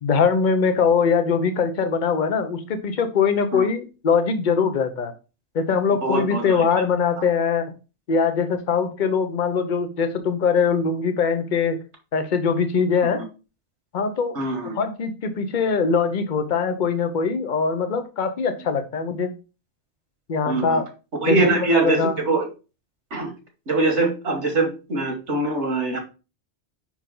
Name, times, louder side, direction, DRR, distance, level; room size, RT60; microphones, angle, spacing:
voice 1, 0.0-5.1 5.5-7.7 8.1-11.8 12.1-13.2 13.9-14.4 14.7-19.3 20.3-20.9 21.3-21.6 21.8-22.2, left 5 dB, 45° left, 8 dB, 0.9 m, -22 dB
voice 2, 6.0-6.6 14.4-14.8 20.5-20.8 21.2-22.5 23.1-23.3 23.7-26.0, right 2 dB, 80° right, 3 dB, 1.8 m, -23 dB
5.5 x 4.5 x 3.8 m, 0.31 s
omnidirectional pair, 1.2 m